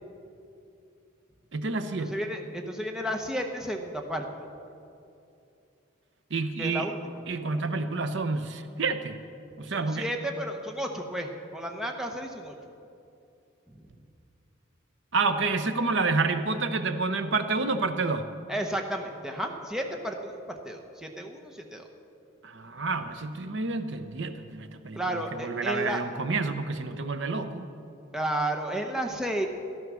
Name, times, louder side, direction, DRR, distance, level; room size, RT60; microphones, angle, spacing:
voice 1, 1.5-2.1 6.3-6.9 7.3-9.2 9.6-10.1 15.1-18.3 22.4-27.7, right 3 dB, 60° right, 9 dB, 0.7 m, -29 dB
voice 2, 2.1-4.3 6.6-7.0 9.7-12.5 13.7-13.9 18.5-21.9 24.9-26.0 28.1-29.5, right 1 dB, 5° right, 2 dB, 0.8 m, -32 dB
14.0 x 12.0 x 6.2 m, 2.7 s
head